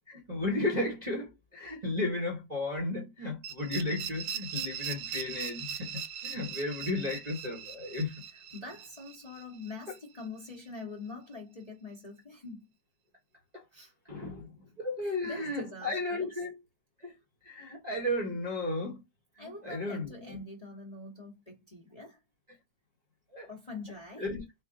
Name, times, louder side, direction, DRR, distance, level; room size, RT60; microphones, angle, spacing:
voice 1, 0.1-8.1 13.5-13.6 14.1-14.5 14.8-16.5 17.0-17.1 17.4-19.0 19.4-20.4 23.3-23.5 24.2-24.4, left 2 dB, 25° right, 1.1 m, -34 dB
sound 1, 3.4-10.2, right 8 dB, 75° right, 1.2 m, -40 dB
voice 2, 8.3-12.6 13.7-13.9 15.0-16.4 19.4-22.2 23.5-24.3, left 3 dB, 25° left, 1.0 m, -44 dB
4.4 x 2.4 x 3.7 m
omnidirectional pair, 2.0 m